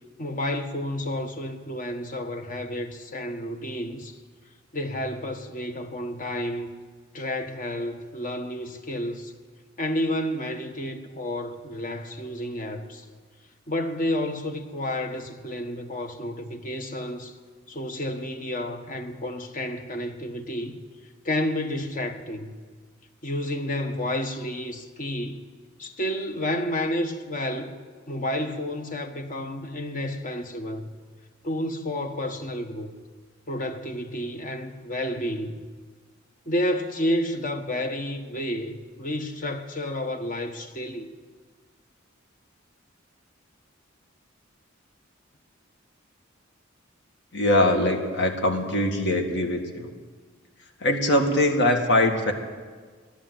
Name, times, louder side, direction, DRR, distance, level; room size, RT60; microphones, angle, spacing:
voice 1, 0.2-4.2 4.7-6.7 7.1-9.3 9.8-13.0 13.7-17.4 17.7-20.8 21.2-22.6 23.2-25.4 25.8-27.8 28.1-30.9 31.4-32.9 33.5-35.7 36.5-41.1, left 1 dB, 40° left, 1.2 m, -30 dB
voice 2, 47.3-49.9 50.8-52.3, left 1 dB, 60° left, 1.8 m, -22 dB
15.5 x 11.5 x 7.8 m
head